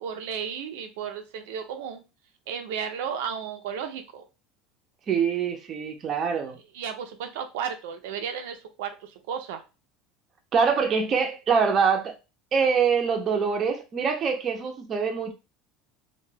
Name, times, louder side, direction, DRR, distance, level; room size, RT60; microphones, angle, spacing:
voice 1, 0.0-2.0 2.5-4.2 6.7-9.6, right 7 dB, 85° right, 0.4 m, -34 dB
voice 2, 5.1-6.6 10.5-12.1 12.5-15.3, right 6 dB, 30° right, 0.5 m, -24 dB
2.2 x 2.2 x 3.2 m
cardioid pair, 155°, 0 cm